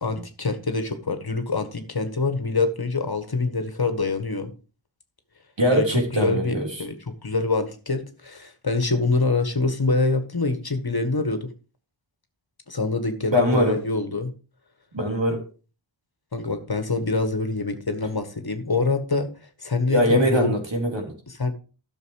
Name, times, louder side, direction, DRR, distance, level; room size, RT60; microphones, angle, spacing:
voice 1, 0.0-4.5 5.7-5.8 6.1-11.5 12.7-14.3 16.3-19.3 19.6-20.5 21.3-21.5, left 3 dB, 50° left, 1.7 m, -25 dB
voice 2, 5.6-6.7 13.3-13.8 14.9-15.4 19.9-21.1, equal, 60° right, 3.6 m, -21 dB
12.5 x 6.6 x 4.8 m
wide cardioid pair, 60°, 49 cm